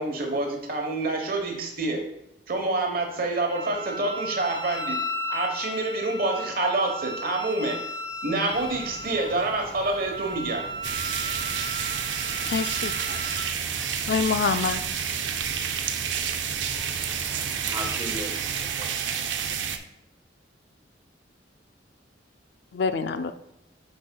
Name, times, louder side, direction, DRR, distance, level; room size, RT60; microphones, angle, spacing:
voice 1, 0.0-2.1 2.5-5.0 5.3-7.8 8.2-10.6, right 2 dB, 55° right, 3 dB, 1.1 m, -27 dB
Wind instrument woodwind instrument, 3.5-13.4, equal, 25° left, 1.1 m, -35 dB
sound 1, 8.5-18.7, equal, 5° left, 0.8 m, -46 dB
sound 2, 10.8-19.8, right 7 dB, 75° right, 0.5 m, -29 dB
voice 2, 12.4-12.9 14.1-14.8 22.7-23.3, left 5 dB, 65° left, 10 dB, 0.4 m, -26 dB
voice 3, 17.2-19.4, equal, 15° right, 1 dB, 1.1 m, -38 dB
9.5 x 4.7 x 2.3 m, 0.82 s
head